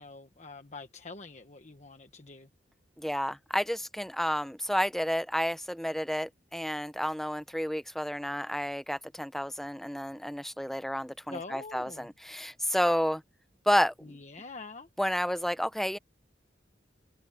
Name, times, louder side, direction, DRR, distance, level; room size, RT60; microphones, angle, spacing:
voice 1, 0.0-2.5 11.3-12.1 14.0-14.9, left 3 dB, 40° left, 1.2 m, -45 dB
voice 2, 3.0-13.2 13.7-14.1 15.0-16.0, equal, ahead, 0.6 m, -30 dB
head